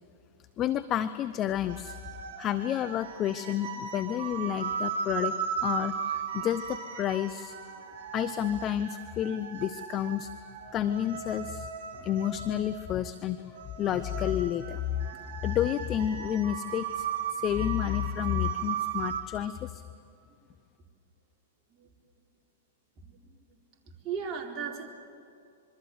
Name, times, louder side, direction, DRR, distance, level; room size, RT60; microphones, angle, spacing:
voice 1, 0.6-2.0 2.4-5.3 5.6-7.6 8.1-10.3 10.7-11.7 12.0-19.8, left 11 dB, 30° left, 13 dB, 0.8 m, -30 dB
sound 1, 1.7-19.2, right 7 dB, 50° right, 6.6 m, -37 dB
voice 2, 23.0-23.6 23.9-24.9, right 6 dB, 30° right, 0 dB, 4.3 m, -39 dB
26.0 x 24.0 x 8.0 m, 2.5 s
hypercardioid pair, 120°, 0 cm